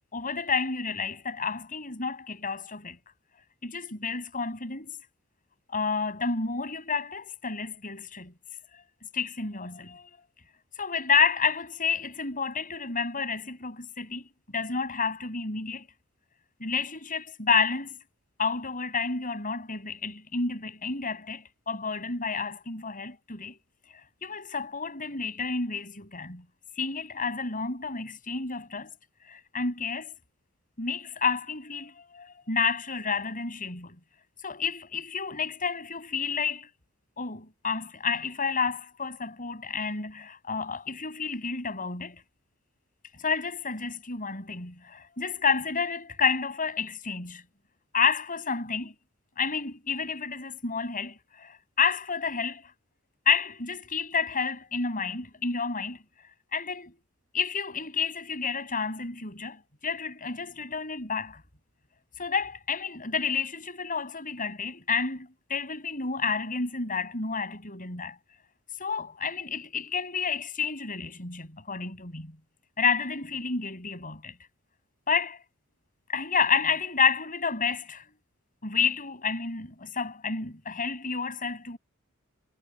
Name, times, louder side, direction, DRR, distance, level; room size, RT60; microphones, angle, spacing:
voice 1, 0.1-3.0 3.6-4.9 5.7-8.3 9.1-10.2 10.8-14.3 14.5-15.9 16.6-18.0 18.4-23.6 23.9-26.4 26.8-28.9 29.3-30.1 30.8-34.0 34.4-36.7 37.2-42.2 43.2-47.4 47.9-48.9 49.4-52.7 53.3-56.0 56.5-57.0 57.3-61.4 62.2-68.2 68.8-72.4 72.8-74.3 75.1-75.4 76.1-78.0 78.6-81.8, left 5 dB, 40° left, 7.0 m, -30 dB
head